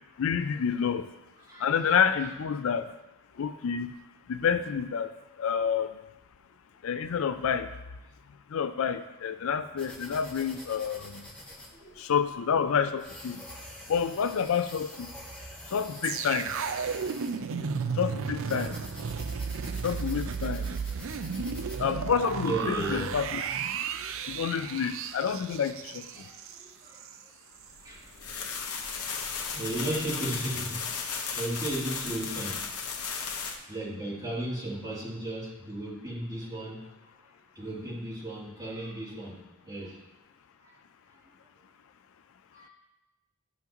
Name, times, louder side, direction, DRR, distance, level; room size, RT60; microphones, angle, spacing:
voice 1, 0.2-1.0 1.6-2.9 3.4-3.9 4.3-5.1 5.4-5.9 6.8-7.7 8.5-11.2 12.0-13.4 13.9-15.1 15.7-16.5 18.0-18.8 19.8-20.7 21.8-23.4 24.3-26.0, left 7 dB, 65° left, 10 dB, 0.4 m, -28 dB
voice 2, 1.5-1.9 2.2-2.3 11.7-12.0 21.3-21.6 22.4-23.1 26.1-27.1 27.8-28.1 29.2-31.0 31.3-32.7 33.7-37.3 37.5-39.4 39.6-40.0 40.6-40.7 41.1-41.2 42.5-42.7, right 1 dB, 20° right, -9 dB, 2.9 m, -35 dB
sound 1, 9.8-21.8, left 1 dB, 5° left, 1.1 m, -46 dB
sound 2, 16.0-27.2 27.5-27.7, right 6 dB, 60° right, 0.4 m, -34 dB
sound 3, 27.8-33.6, left 5 dB, 85° left, 1.1 m, -35 dB
11.5 x 5.7 x 3.0 m, 1.0 s
head